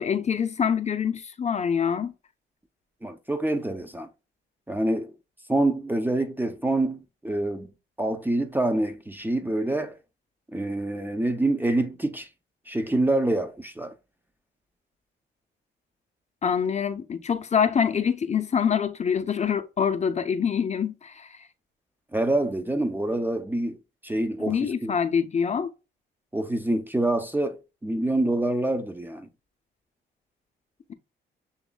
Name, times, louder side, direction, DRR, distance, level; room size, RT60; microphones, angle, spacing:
voice 1, 0.0-2.1 16.4-21.3 24.5-25.7, left 7 dB, 35° left, 0.6 m, -25 dB
voice 2, 3.0-4.1 4.7-5.1 5.5-7.7 8.0-10.0 10.5-12.3 12.7-13.9 22.1-23.8 24.0-24.9 26.3-29.3, right 1 dB, 10° right, 0.5 m, -26 dB
7.1 x 3.0 x 2.2 m
cardioid pair, 90°, 20 cm